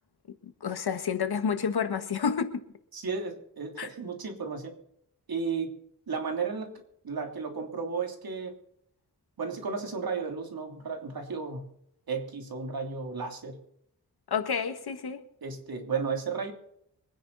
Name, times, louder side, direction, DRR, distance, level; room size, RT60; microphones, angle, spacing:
voice 1, 0.4-2.6 3.8-3.9 14.3-15.2, left 6 dB, 80° left, 1.7 m, -29 dB
voice 2, 2.9-4.7 5.3-5.8 6.1-8.6 9.4-11.7 12.1-13.6 15.4-16.5, right 5 dB, 70° right, 3.1 m, -34 dB
24.5 x 10.0 x 4.1 m
wide cardioid pair, 135°, 38 cm